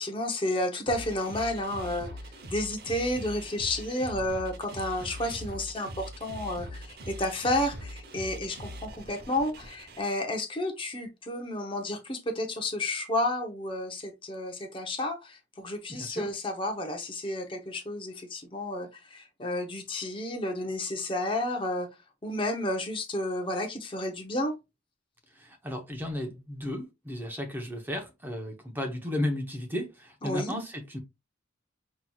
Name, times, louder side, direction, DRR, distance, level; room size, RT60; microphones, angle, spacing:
voice 1, 0.0-2.1 2.5-21.9 22.2-24.5 30.2-30.5, left 1 dB, 25° left, 0.7 m, -31 dB
sound 1, 0.9-10.0, equal, 55° right, 0.9 m, -42 dB
voice 2, 15.9-16.3 25.3-31.0, left 1 dB, 10° right, 0.8 m, -34 dB
5.7 x 3.0 x 2.3 m
head